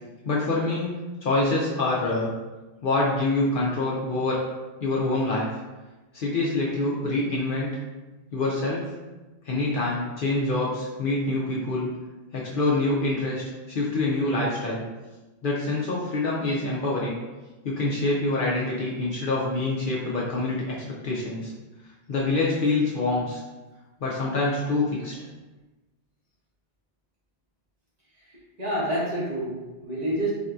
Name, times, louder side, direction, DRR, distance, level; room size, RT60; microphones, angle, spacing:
voice 1, 0.2-0.9 1.2-2.3 2.8-4.4 4.8-5.5 6.1-7.7 8.3-8.9 9.4-11.9 12.3-14.8 15.4-17.2 17.6-20.8 21.0-21.5 22.1-23.4 24.0-25.1, left 2 dB, 60° left, -5 dB, 0.6 m, -26 dB
voice 2, 28.2-30.3, right 1 dB, 40° right, -7 dB, 0.9 m, -28 dB
3.5 x 2.6 x 2.2 m, 1.1 s
omnidirectional pair, 1.2 m